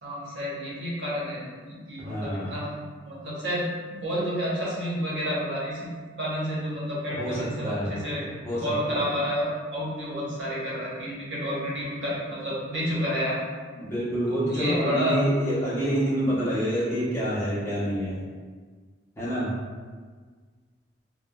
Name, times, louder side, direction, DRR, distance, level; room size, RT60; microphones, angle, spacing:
voice 1, 0.0-2.7 3.1-3.7 3.9-5.9 6.2-8.2 8.5-13.4 14.3-15.2, equal, 75° right, -7 dB, 1.0 m, -30 dB
voice 2, 2.0-2.6 7.1-8.0 8.4-9.1 13.7-18.2 19.2-19.5, equal, 15° left, -11 dB, 0.7 m, -27 dB
3.2 x 2.2 x 2.2 m, 1.5 s
head